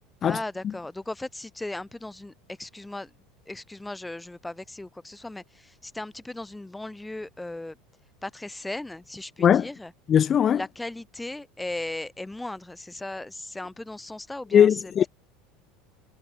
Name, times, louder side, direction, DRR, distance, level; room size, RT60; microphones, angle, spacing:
voice 1, 0.2-3.1 3.5-7.8 8.2-9.9 10.5-15.1, left 2 dB, 5° left, 7.2 m, -37 dB
voice 2, 10.1-10.6 14.5-15.1, left 9 dB, 25° left, 1.0 m, -19 dB
cardioid pair, 165°, 0 cm